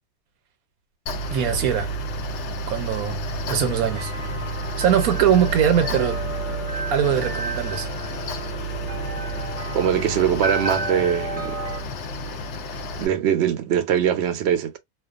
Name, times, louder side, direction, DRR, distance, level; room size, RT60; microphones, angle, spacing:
Mechanical fan, 1.1-13.1, right 1 dB, 65° left, 0.8 m, -30 dB
voice 1, 1.3-1.9 2.7-4.1 4.8-6.2 6.9-7.9, right 9 dB, 80° right, 1.1 m, -22 dB
sound 1, 3.2-11.8, right 2 dB, 10° right, 0.8 m, -33 dB
voice 2, 9.7-11.6 13.0-14.8, right 9 dB, 60° right, 0.7 m, -22 dB
2.4 x 2.3 x 2.4 m
omnidirectional pair, 1.5 m